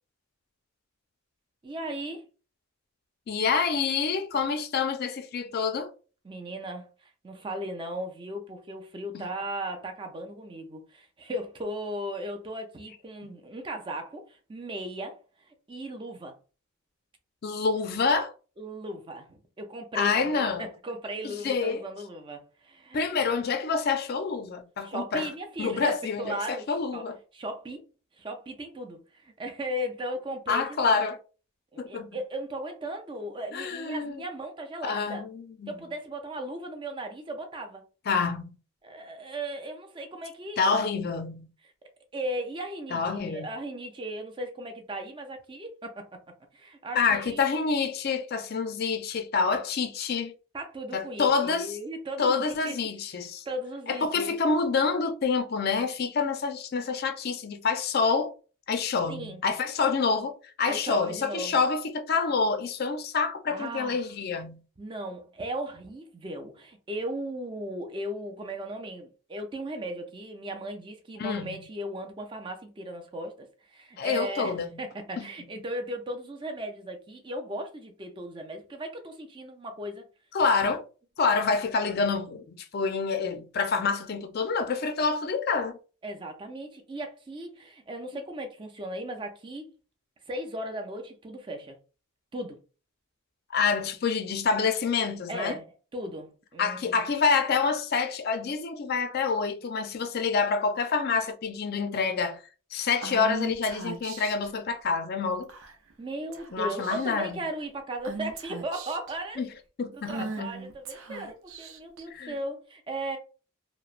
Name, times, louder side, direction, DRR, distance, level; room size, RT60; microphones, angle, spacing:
voice 1, 1.6-2.2 6.2-16.4 18.6-23.0 24.8-27.0 27.3-27.8 28.1-31.0 31.7-35.2 35.7-37.8 38.8-40.8 42.1-46.1 46.5-47.6 50.5-52.8 53.1-54.4 59.1-59.4 60.7-61.6 63.5-64.1 64.8-80.0 86.0-89.7 90.3-91.8 92.3-92.6 95.3-95.6 95.9-97.1 106.0-109.4 109.9-113.2, right 1 dB, 25° right, 0.4 m, -37 dB
voice 2, 3.3-5.9 9.1-9.2 17.4-18.3 20.0-20.7 21.2-21.8 22.9-25.3 25.6-27.2 30.5-31.2 31.8-32.1 33.5-34.2 34.8-35.7 38.1-38.5 40.6-41.5 42.9-43.5 47.0-50.3 50.9-51.8 52.2-53.4 53.9-58.3 58.7-64.6 71.2-71.6 74.0-74.8 75.2-75.3 80.3-80.9 81.2-85.8 93.5-95.6 96.6-102.4 102.7-105.5 106.5-107.5 109.4-109.5 109.8-110.5 112.1-112.3, left 5 dB, 45° left, 0.4 m, -27 dB
Female speech woman speaking / Whispering, 103.0-104.5 105.5-105.9 106.3-106.5 106.8-107.3 108.0-109.1 110.0-112.0, right 3 dB, 70° right, 0.5 m, -38 dB
2.9 x 2.1 x 2.4 m
head